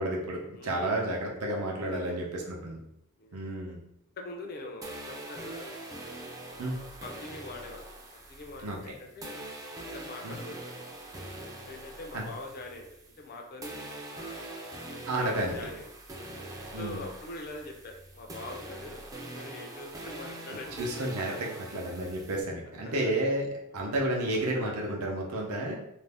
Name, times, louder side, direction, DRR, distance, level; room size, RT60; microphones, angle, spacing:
voice 1, 0.0-2.8 3.3-3.8 6.6-6.8 8.6-8.8 10.2-10.4 12.1-12.3 15.1-15.6 16.7-17.0 20.8-25.8, right 1 dB, 75° right, -1 dB, 0.6 m, -31 dB
voice 2, 0.5-1.1 1.9-2.5 3.2-3.5 4.2-5.8 6.5-7.9 8.3-9.5 9.8-10.8 11.6-12.9 13.2-15.9 16.8-20.8 22.8-22.9 23.2-23.3 23.7-23.9, left 2 dB, 45° left, 2 dB, 0.5 m, -44 dB
sound 1, 4.8-13.3 13.6-22.4, right 1 dB, 15° right, 0.4 m, -43 dB
2.5 x 2.0 x 3.3 m, 0.79 s
head